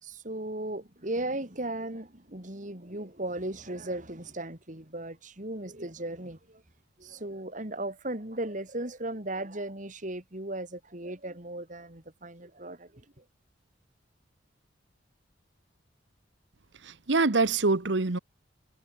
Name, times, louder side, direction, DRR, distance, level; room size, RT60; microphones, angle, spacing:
voice 1, 0.0-6.6 7.0-13.2, right 1 dB, 40° right, 3.3 m, -36 dB
voice 2, 16.8-18.2, right 3 dB, 70° right, 1.1 m, -25 dB
head